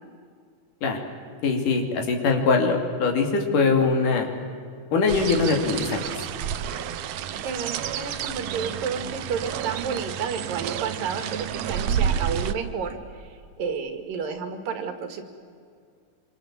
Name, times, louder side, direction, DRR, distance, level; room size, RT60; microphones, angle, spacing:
voice 1, 1.4-4.3 4.9-6.0, left 4 dB, 70° left, 3 dB, 4.2 m, -22 dB
sound 1, 5.1-12.5, right 9 dB, 70° right, 1.6 m, -30 dB
voice 2, 7.2-15.2, right 6 dB, 85° right, 7 dB, 3.8 m, -31 dB
26.0 x 25.5 x 7.4 m, 2.3 s
omnidirectional pair, 3.9 m